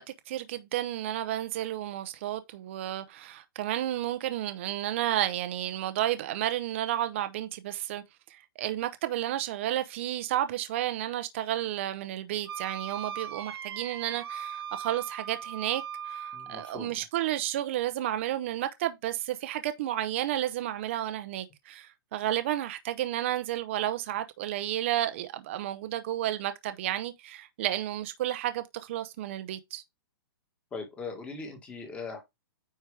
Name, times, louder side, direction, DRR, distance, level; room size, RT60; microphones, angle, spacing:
voice 1, 0.0-8.0 8.3-29.8, right 13 dB, 30° right, 0.7 m, -32 dB
Wind instrument woodwind instrument, 12.5-16.8, right 8 dB, 85° right, 0.8 m, -39 dB
voice 2, 16.3-17.0 30.7-32.2, left 4 dB, 10° left, 1.6 m, -40 dB
9.2 x 4.6 x 3.4 m
hypercardioid pair, 175°, 13 cm